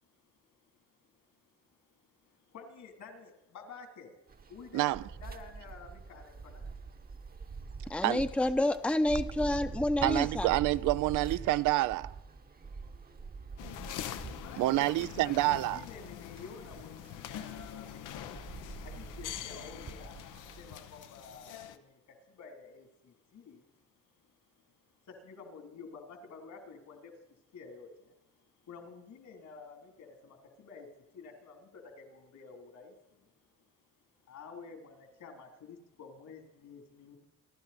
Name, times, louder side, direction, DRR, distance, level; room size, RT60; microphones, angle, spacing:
voice 1, 2.5-4.2 4.5-4.8 5.2-6.8 14.4-18.5 18.8-23.7 24.6-24.7 25.0-33.3 34.2-37.2, left 5 dB, 70° left, 3.4 m, -51 dB
sound 1, 4.3-20.8, right 4 dB, 30° right, 1.0 m, -45 dB
voice 2, 7.9-10.5, left 1 dB, 5° left, 0.7 m, -29 dB
voice 3, 10.0-12.1 14.6-15.8, right 17 dB, 85° right, 0.5 m, -28 dB
sound 2, 13.6-21.8, left 11 dB, 90° left, 0.9 m, -44 dB
29.0 x 11.5 x 4.3 m
cardioid pair, 90°, 30 cm